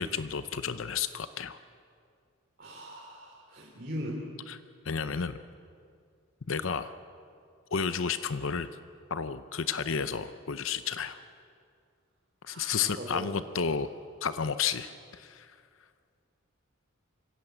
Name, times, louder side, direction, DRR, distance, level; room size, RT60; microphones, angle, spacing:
voice 1, 0.0-1.6 4.5-4.6 4.8-5.4 6.5-6.9 7.7-8.7 9.1-11.2 12.4-13.9 14.2-15.6, left 6 dB, 65° left, 12 dB, 0.7 m, -32 dB
voice 2, 2.6-4.2 12.5-13.4, equal, 45° right, -2 dB, 2.9 m, -40 dB
25.0 x 16.5 x 8.0 m, 2.3 s
head